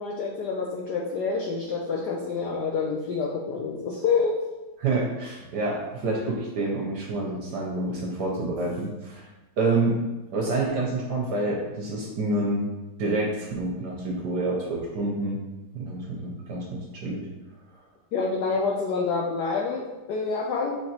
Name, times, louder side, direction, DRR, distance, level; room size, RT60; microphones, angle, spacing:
voice 1, 0.0-4.4 18.1-20.8, left 4 dB, 80° left, -2 dB, 0.9 m, -27 dB
voice 2, 4.8-9.3 9.6-10.0 10.3-12.7 13.0-15.4 15.7-17.2, right 2 dB, 65° right, -2 dB, 1.1 m, -28 dB
5.7 x 3.2 x 2.8 m, 1.1 s
omnidirectional pair, 2.3 m